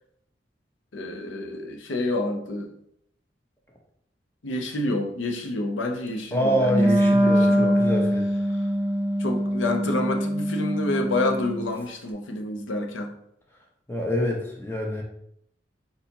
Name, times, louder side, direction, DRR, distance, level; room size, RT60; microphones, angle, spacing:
voice 1, 0.9-2.7 4.4-6.7 7.0-7.8 9.2-13.2, left 2 dB, 90° left, 4 dB, 0.6 m, -28 dB
voice 2, 6.3-8.3 13.9-15.0, equal, 10° left, 0 dB, 0.7 m, -26 dB
Wind instrument woodwind instrument, 6.7-11.7, equal, 10° right, 0.3 m, -23 dB
4.3 x 4.1 x 2.8 m, 0.74 s
head